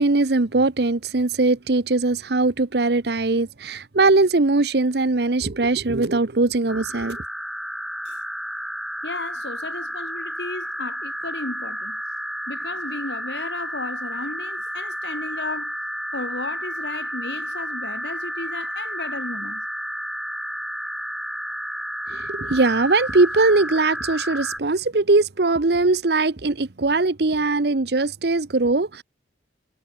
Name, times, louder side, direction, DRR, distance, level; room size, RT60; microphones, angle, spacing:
voice 1, 0.0-7.2 22.1-29.0, right 3 dB, 60° right, 0.9 m, -20 dB
sound 1, 6.7-24.6, equal, ahead, 1.6 m, -31 dB
voice 2, 9.0-12.0 12.5-15.8 16.1-19.6, left 2 dB, 70° left, 2.3 m, -34 dB
head